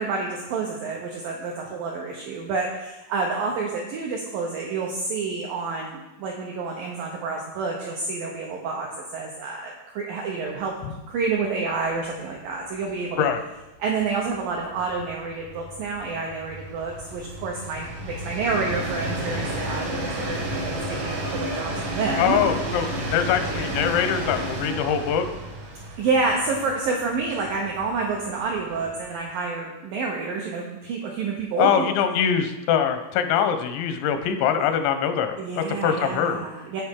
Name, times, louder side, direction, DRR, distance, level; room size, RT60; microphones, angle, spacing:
voice 1, 0.0-10.8 11.1-13.3 13.8-22.4 26.0-31.9 35.4-36.8, right 4 dB, 85° right, 0 dB, 2.0 m, -29 dB
Train, 10.9-11.1 11.4-11.5 11.8-29.2, right 1 dB, 65° right, 1.4 m, -32 dB
voice 2, 22.2-25.3 31.6-36.4, left 8 dB, 90° left, 8 dB, 3.1 m, -23 dB
14.5 x 5.0 x 3.6 m, 1.0 s
omnidirectional pair, 5.1 m